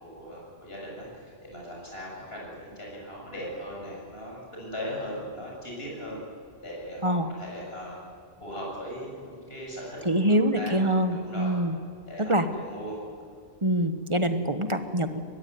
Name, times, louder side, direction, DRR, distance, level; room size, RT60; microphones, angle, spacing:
voice 1, 0.0-6.2 6.6-8.0 8.4-10.8 11.1-11.5 12.1-13.0, equal, 65° left, -3 dB, 7.9 m, -39 dB
voice 2, 10.0-11.7 12.2-12.5 13.6-15.2, right 1 dB, 30° right, 8 dB, 1.4 m, -25 dB
22.5 x 21.5 x 9.6 m, 2.2 s
omnidirectional pair, 1.1 m